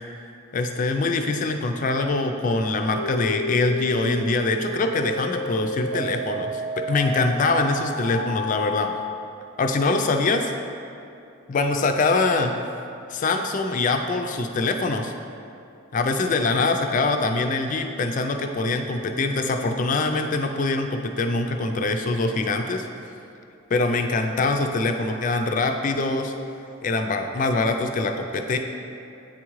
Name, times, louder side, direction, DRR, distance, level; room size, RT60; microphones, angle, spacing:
voice 1, 0.5-8.9 9.6-10.5 11.5-12.5 13.1-15.1 15.9-22.9 23.7-26.3 26.8-28.6, left 3 dB, 40° left, 5 dB, 0.3 m, -24 dB
sound 1, 2.9-8.9, left 1 dB, 75° right, 0.9 m, -31 dB
8.6 x 3.6 x 3.1 m, 2.7 s
head